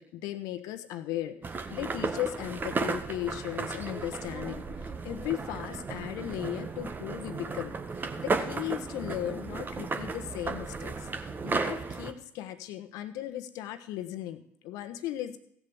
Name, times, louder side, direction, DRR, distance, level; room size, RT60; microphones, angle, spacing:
voice 1, 0.0-15.4, left 13 dB, 70° left, 10 dB, 1.2 m, -37 dB
sound 1, 1.4-12.1, right 4 dB, 30° right, 1.5 m, -34 dB
16.0 x 7.2 x 7.1 m, 0.70 s
hypercardioid pair, 65°, 6 cm